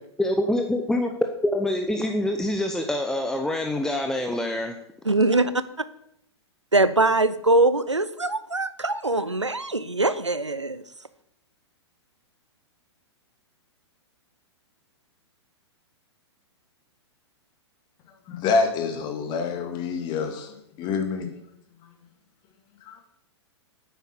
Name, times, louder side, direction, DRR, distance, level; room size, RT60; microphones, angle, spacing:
voice 1, 0.2-1.1 1.4-4.7, left 1 dB, 5° left, 0.7 m, -25 dB
voice 2, 5.1-5.5 6.7-10.8, right 2 dB, 90° right, 0.7 m, -22 dB
voice 3, 18.3-21.3 22.9-23.0, left 4 dB, 30° left, 2.0 m, -27 dB
9.2 x 8.3 x 6.8 m
figure-of-eight pair, 105°, 15 cm